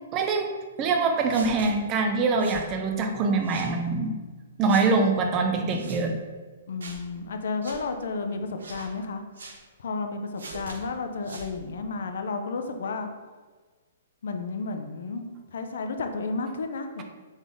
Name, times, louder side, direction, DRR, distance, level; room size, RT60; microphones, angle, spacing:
voice 1, 0.1-0.5 0.8-4.2 4.6-6.1, right 4 dB, 25° right, 4 dB, 0.5 m, -24 dB
sound 1, 1.3-1.7 2.4-2.7 3.4-3.7 4.7-4.9 5.7-6.0 6.8-7.0 7.6-7.8 8.6-8.9 9.3-9.6 10.4-10.8 11.2-11.5, right 2 dB, 85° right, 0.7 m, -42 dB
voice 2, 6.7-9.2 9.8-13.1 14.2-15.2 15.5-17.0, left 4 dB, 75° left, 6 dB, 0.5 m, -32 dB
4.0 x 3.4 x 3.6 m, 1.3 s
hypercardioid pair, 150°, 0 cm